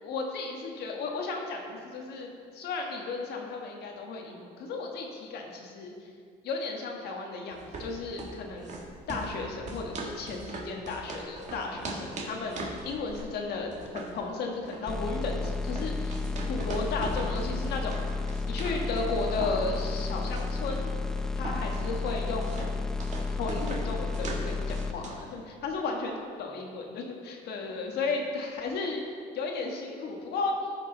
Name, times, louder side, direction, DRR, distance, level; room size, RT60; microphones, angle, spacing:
voice 1, 0.0-5.9 6.4-8.7 9.1-12.6 12.8-16.2 16.5-18.0 18.5-20.9 21.4-22.7 23.4-29.0 29.3-30.6, left 3 dB, 75° left, 1 dB, 1.5 m, -34 dB
sound 1, 7.5-25.3, right 2 dB, 45° right, 1.6 m, -41 dB
sound 2, 14.9-24.9, left 3 dB, 5° left, 0.3 m, -32 dB
14.0 x 5.3 x 3.9 m, 2.2 s
cardioid pair, 110°, 17 cm